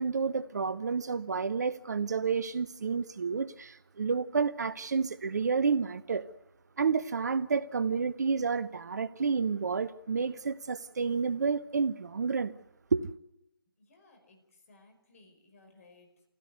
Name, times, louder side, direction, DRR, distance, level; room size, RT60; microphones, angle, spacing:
voice 1, 0.0-6.3 6.8-12.5 12.9-13.1, right 5 dB, 50° right, 0.8 m, -30 dB
voice 2, 13.8-16.3, left 3 dB, 40° left, 5.2 m, -60 dB
25.5 x 16.5 x 8.0 m
figure-of-eight pair, 150°, 12 cm